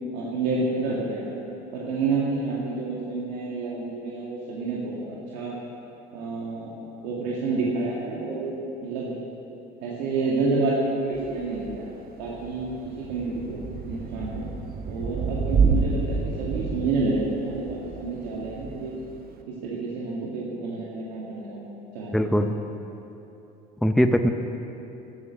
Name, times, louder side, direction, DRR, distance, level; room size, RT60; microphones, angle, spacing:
voice 1, 0.1-1.3 1.7-5.5 6.1-6.7 7.0-8.5 8.8-9.1 9.8-11.9 12.2-13.6 13.9-14.4 14.9-18.9 19.6-21.6 21.9-22.4, right 3 dB, 85° right, -5 dB, 2.2 m, -29 dB
Thunder / Rain, 11.1-19.4, right 4 dB, 45° right, 1.2 m, -29 dB
voice 2, 22.1-22.6 23.8-24.3, equal, ahead, 6 dB, 0.7 m, -21 dB
14.0 x 11.0 x 6.4 m, 3.0 s
supercardioid pair, 90°, 21 cm